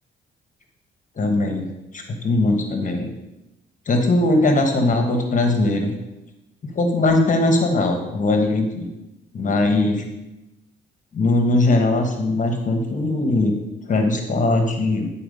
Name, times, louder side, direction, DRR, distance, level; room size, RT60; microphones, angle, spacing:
voice 1, 1.2-3.1 3.9-5.9 6.6-8.9 9.3-10.0 11.1-13.5 13.9-15.1, left 2 dB, 40° left, 4 dB, 1.2 m, -20 dB
10.0 x 4.3 x 5.3 m, 0.97 s
cardioid pair, 90°, 20 cm